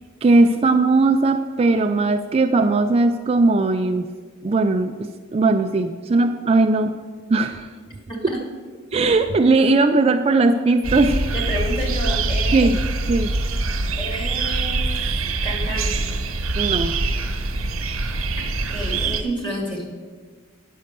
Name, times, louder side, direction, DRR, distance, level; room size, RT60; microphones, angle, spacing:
voice 1, 0.2-4.1 4.4-6.9 7.3-7.7 8.9-11.2 12.5-12.8 13.1-13.3 16.6-17.0, right 3 dB, 30° right, 7 dB, 0.3 m, -18 dB
sound 1, 10.8-19.2, right 3 dB, 75° right, 1.2 m, -24 dB
voice 2, 11.3-12.7 14.0-14.9 15.4-16.0 18.7-19.8, equal, 25° left, -1 dB, 2.3 m, -29 dB
9.5 x 6.4 x 6.6 m, 1.5 s
head